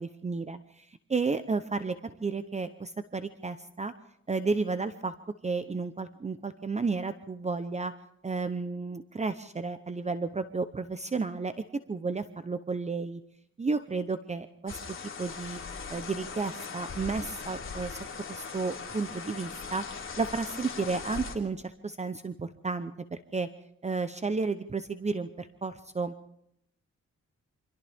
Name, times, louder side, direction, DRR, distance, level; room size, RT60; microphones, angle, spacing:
voice 1, 0.0-3.9 4.3-5.1 5.4-7.9 8.2-11.5 11.9-13.2 13.6-15.6 15.9-18.0 18.3-19.8 20.2-23.5 23.8-26.1, right 4 dB, 25° right, 10 dB, 0.8 m, -32 dB
sound 1, 14.7-21.3, left 5 dB, 45° left, 3.3 m, -40 dB
28.5 x 25.5 x 3.6 m, 0.73 s
cardioid pair, 115°, 29 cm